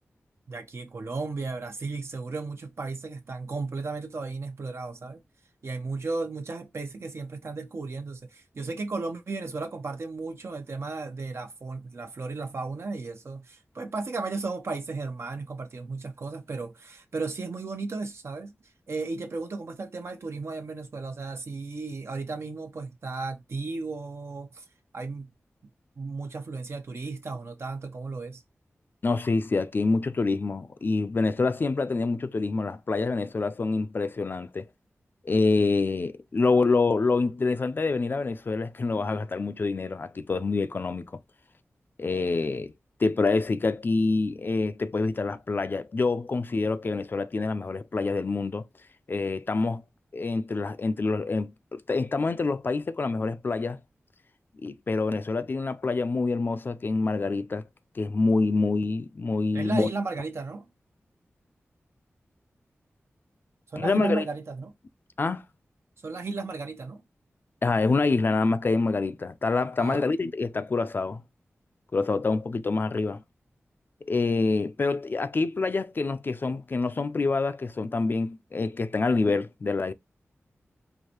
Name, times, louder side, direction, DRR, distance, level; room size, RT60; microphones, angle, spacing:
voice 1, 0.5-5.2 5.6-18.5 18.9-24.6 24.9-25.3 26.0-28.4 59.5-60.7 63.7-64.7 66.0-67.0 69.8-70.1, right 3 dB, 65° right, 0.8 m, -34 dB
voice 2, 29.0-34.7 35.2-41.1 42.0-42.7 43.0-48.6 49.1-49.8 50.1-53.8 54.6-57.7 58.0-59.9 63.8-64.3 65.2-65.4 67.6-71.2 71.9-73.2 74.0-79.9, left 3 dB, 45° left, 0.4 m, -26 dB
4.7 x 2.6 x 2.9 m
wide cardioid pair, 100°, 5 cm